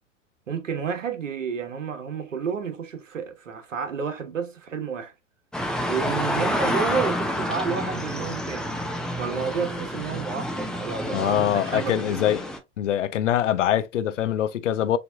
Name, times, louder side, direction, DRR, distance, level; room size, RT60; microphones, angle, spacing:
voice 1, 0.5-5.1 5.9-8.7 9.1-12.2, right 6 dB, 75° right, 1.2 m, -30 dB
sound 1, 5.5-12.6, equal, ahead, 0.8 m, -29 dB
voice 2, 11.1-12.5 12.8-15.0, left 11 dB, 70° left, 0.7 m, -23 dB
6.6 x 3.0 x 2.3 m
figure-of-eight pair, 95°, 38 cm